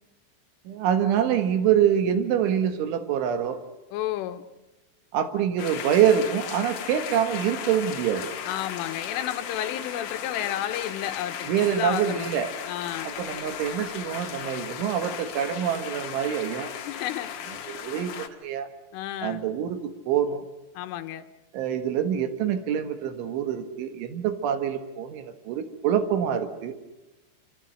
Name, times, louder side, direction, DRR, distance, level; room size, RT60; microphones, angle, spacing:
voice 1, 0.7-3.6 5.1-8.3 11.5-12.5 13.0-16.7 17.7-18.7 19.2-20.4 21.5-26.8, right 9 dB, 75° right, 8 dB, 3.9 m, -25 dB
voice 2, 3.9-4.5 8.5-12.3 12.7-13.1 16.8-17.3 18.9-19.4 20.8-21.3, left 12 dB, 80° left, 10 dB, 3.6 m, -31 dB
sound 1, 5.6-18.3, left 8 dB, 60° left, 2.4 m, -36 dB
27.5 x 25.5 x 6.6 m, 1.0 s
omnidirectional pair, 5.7 m